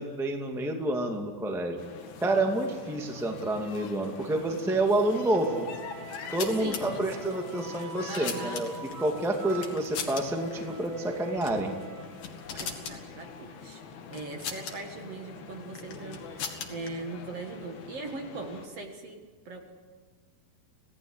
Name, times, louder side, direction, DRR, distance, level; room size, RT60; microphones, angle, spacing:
voice 1, 0.0-1.8 2.2-5.7 6.3-8.7 9.0-11.7 12.5-12.6, right 1 dB, ahead, 2 dB, 1.3 m, -28 dB
sound 1, 1.8-18.7, left 6 dB, 85° left, 3.8 m, -45 dB
Wind instrument woodwind instrument, 5.0-12.1, right 5 dB, 80° right, 5.8 m, -46 dB
sound 2, 6.0-6.8 7.7-8.9 9.6-10.2 10.5-10.7 11.4-11.6 12.0-13.0 14.1-14.8 15.8-16.9, left 6 dB, 65° left, 3.6 m, -38 dB
voice 2, 6.5-7.1 8.1-8.6 12.6-13.8 14.1-19.7, right 3 dB, 50° right, 3 dB, 2.4 m, -40 dB
27.0 x 17.5 x 8.0 m, 1.5 s
omnidirectional pair, 4.2 m